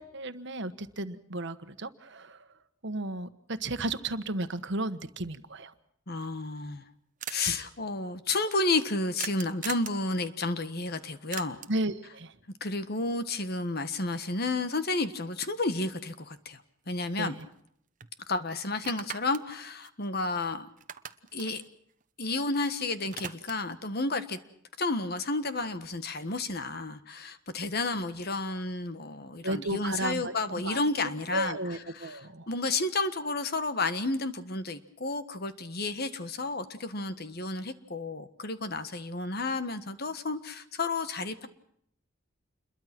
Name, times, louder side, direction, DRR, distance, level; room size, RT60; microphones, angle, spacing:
voice 1, 0.0-5.7 7.4-7.7 11.7-12.4 17.2-17.5 29.4-32.5, right 2 dB, 60° right, 11 dB, 1.4 m, -34 dB
voice 2, 6.1-6.8 7.3-11.6 12.6-16.6 16.9-17.3 18.3-20.7 21.3-21.6 22.2-24.4 24.8-31.6 32.0-32.1 32.5-41.5, left 3 dB, 50° left, 11 dB, 1.5 m, -31 dB
sound 1, 6.3-6.4 6.5-6.6 6.8-6.9 7.2-7.5 9.2-10.0 11.3-11.9 16.1-16.2 16.5-17.7 18.0-18.1 18.7-20.5 20.8-22.6 22.9-23.8, right 9 dB, 40° right, 1.0 m, -42 dB
28.0 x 22.0 x 6.1 m, 0.68 s
head